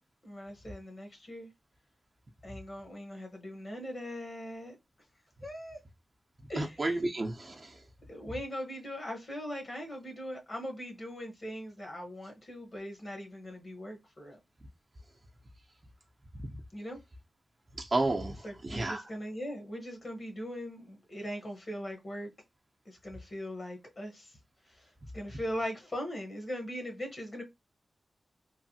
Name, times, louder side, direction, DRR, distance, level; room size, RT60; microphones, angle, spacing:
voice 1, 0.2-1.5 2.4-4.8 5.4-5.8 6.5-6.8 8.1-14.4 16.7-17.0 18.4-22.3 22.8-24.4 24.7-27.4, equal, 50° left, 1.0 m, -40 dB
voice 2, 6.6-7.8 17.8-19.0, right 2 dB, 45° right, 0.6 m, -32 dB
3.1 x 2.1 x 2.8 m
cardioid pair, 55°, 0 cm